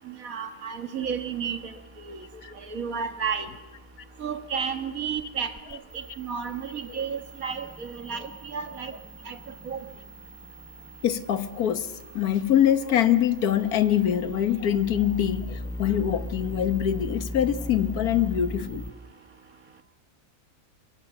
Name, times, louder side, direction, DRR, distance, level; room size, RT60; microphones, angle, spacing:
voice 1, 0.1-1.7 2.0-2.2 2.6-3.5 4.2-8.9 9.3-9.4 9.7-9.8, right 6 dB, 70° right, 7 dB, 1.9 m, -32 dB
sound 1, 1.0-18.9, left 1 dB, 5° left, 0.8 m, -41 dB
voice 2, 11.0-18.9, left 10 dB, 85° left, 11 dB, 1.6 m, -24 dB
23.5 x 23.5 x 7.2 m, 1.2 s
omnidirectional pair, 1.6 m